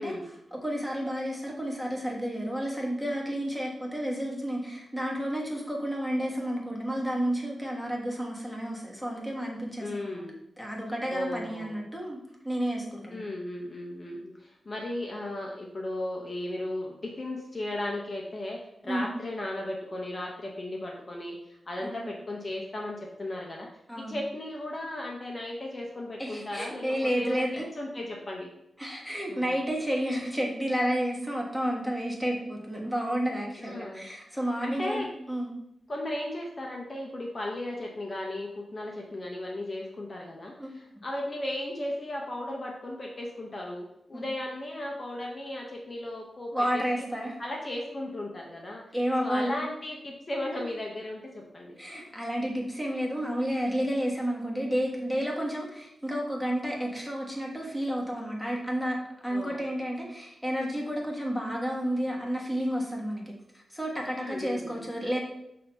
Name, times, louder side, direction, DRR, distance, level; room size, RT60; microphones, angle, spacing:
voice 1, 0.0-10.2 10.6-12.2 12.4-13.3 18.8-19.1 21.8-22.1 23.9-24.2 26.2-27.7 28.8-35.5 40.6-40.8 44.1-44.2 46.5-47.4 48.9-49.5 51.8-59.0 59.2-63.2 63.5-65.2, equal, ahead, -2 dB, 1.3 m, -31 dB
voice 2, 9.8-10.4 11.1-11.8 13.1-18.6 18.8-23.7 24.0-27.5 27.7-28.5 29.3-29.5 33.6-34.1 34.6-35.1 35.9-47.0 47.4-48.8 49.2-51.8 59.3-59.7 64.1-64.8, left 1 dB, 35° left, -1 dB, 0.9 m, -36 dB
6.5 x 2.8 x 5.3 m, 0.81 s
wide cardioid pair, 120°, 0 cm